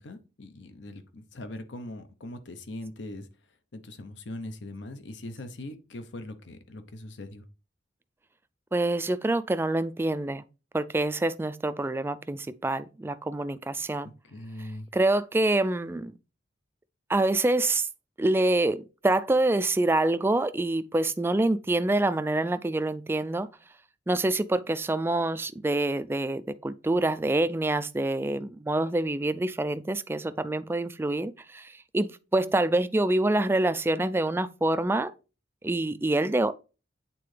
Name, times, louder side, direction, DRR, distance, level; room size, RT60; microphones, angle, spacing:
voice 1, 0.0-3.3 3.7-7.4 14.0-14.9, left 1 dB, 75° left, 0.8 m, -41 dB
voice 2, 8.7-10.4 10.7-14.1 14.9-16.1 17.1-17.9 18.2-23.5 24.1-35.1 35.6-36.5, right 2 dB, 15° right, 0.3 m, -26 dB
8.5 x 3.8 x 3.2 m
head